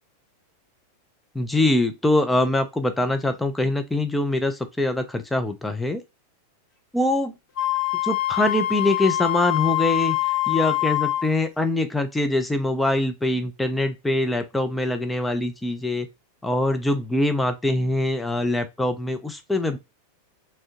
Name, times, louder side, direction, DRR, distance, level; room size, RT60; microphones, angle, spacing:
voice 1, 1.3-6.0 6.9-7.3 8.0-10.2 10.5-16.1 16.4-19.8, left 1 dB, 5° left, 0.4 m, -23 dB
Wind instrument woodwind instrument, 7.6-11.3, left 16 dB, 55° left, 1.1 m, -24 dB
2.7 x 2.1 x 2.7 m
figure-of-eight pair, 90°, 0 cm